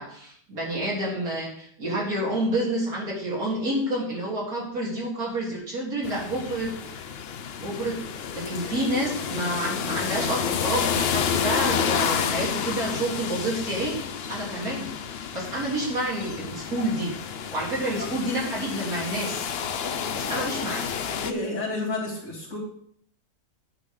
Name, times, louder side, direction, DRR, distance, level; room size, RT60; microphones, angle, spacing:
voice 1, 0.0-6.7 7.6-8.0 8.3-13.9 14.3-14.9 15.3-17.1 17.5-19.5 20.1-20.9, right 1 dB, 55° right, -5 dB, 3.9 m, -29 dB
sound 1, 6.0-21.3, left 7 dB, 70° left, 0.5 m, -30 dB
voice 2, 21.2-22.6, left 2 dB, 45° left, -10 dB, 3.0 m, -30 dB
9.4 x 5.1 x 5.4 m, 0.63 s
omnidirectional pair, 1.8 m